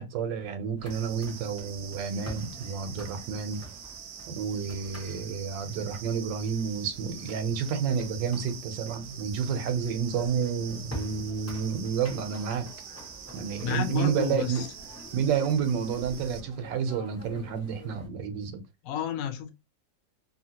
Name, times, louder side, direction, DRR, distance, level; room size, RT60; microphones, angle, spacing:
voice 1, 0.0-3.6 4.3-12.7 13.3-14.7 15.1-18.6, right 6 dB, 90° right, 1.3 m, -30 dB
sound 1, 0.8-18.1, equal, 15° left, 0.6 m, -47 dB
sound 2, 0.9-16.4, right 7 dB, 70° right, 1.0 m, -45 dB
voice 2, 13.6-14.7 18.8-19.5, left 9 dB, 70° left, 0.9 m, -31 dB
2.8 x 2.7 x 2.7 m
omnidirectional pair, 1.9 m